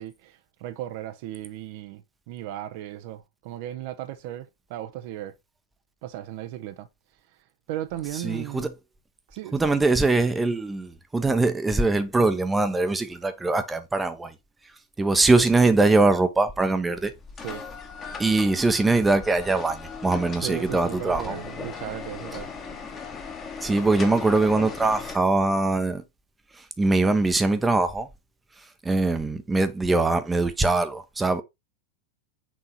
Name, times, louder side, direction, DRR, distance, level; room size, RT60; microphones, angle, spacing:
voice 1, 0.0-5.3 6.0-6.9 7.7-8.7 9.3-9.7 17.4-17.6 20.4-22.5, right 13 dB, 50° right, 0.7 m, -36 dB
voice 2, 8.1-8.7 9.5-14.3 15.0-17.1 18.2-21.4 23.6-26.0 26.6-28.1 28.8-31.4, right 3 dB, 10° right, 0.8 m, -22 dB
sound 1, 16.9-25.2, left 5 dB, 25° left, 1.3 m, -38 dB
6.2 x 3.8 x 4.2 m
figure-of-eight pair, 90°, 0 cm